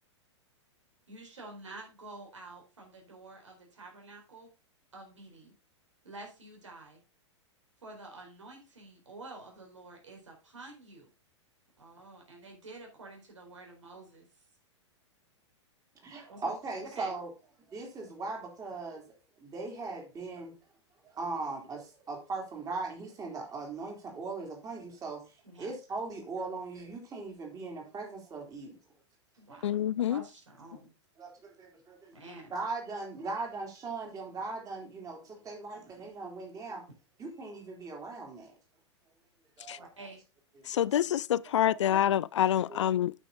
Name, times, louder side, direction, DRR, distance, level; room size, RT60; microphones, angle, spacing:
voice 1, 1.1-4.5 4.9-5.5 6.0-7.0 7.8-11.1 11.8-14.3 16.3-16.5 16.9-17.1 25.4-25.8 29.4-29.7 30.1-30.9 32.1-32.5 39.8-40.2, right 2 dB, 85° right, 4.2 m, -49 dB
voice 2, 16.0-17.3 17.7-19.0 19.4-20.5 21.0-25.2 25.6-28.8 31.2-32.1 32.5-36.8 37.2-38.5 39.6-39.9 40.6-40.9 41.5-42.2 42.6-42.8, right 3 dB, 25° right, 3.4 m, -39 dB
voice 3, 29.6-30.2 39.7-39.8 40.7-43.1, left 11 dB, 75° left, 0.4 m, -27 dB
8.9 x 6.2 x 3.9 m
hypercardioid pair, 110°, 15 cm